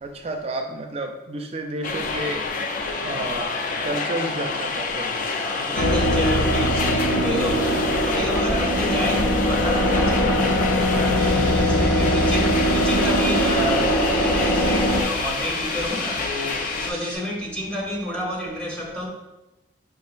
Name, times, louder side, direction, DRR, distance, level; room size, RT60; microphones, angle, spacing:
voice 1, 0.0-2.5 3.0-3.5 3.8-5.2, right 1 dB, 30° right, 0.4 m, -30 dB
sound 1, 1.8-16.9, left 4 dB, 45° left, 0.3 m, -28 dB
voice 2, 5.4-19.1, equal, 5° left, 0.8 m, -30 dB
sound 2, 5.8-15.0, equal, 85° left, 0.7 m, -21 dB
sound 3, 11.2-17.2, equal, 25° left, 1.2 m, -37 dB
5.4 x 3.4 x 2.4 m
head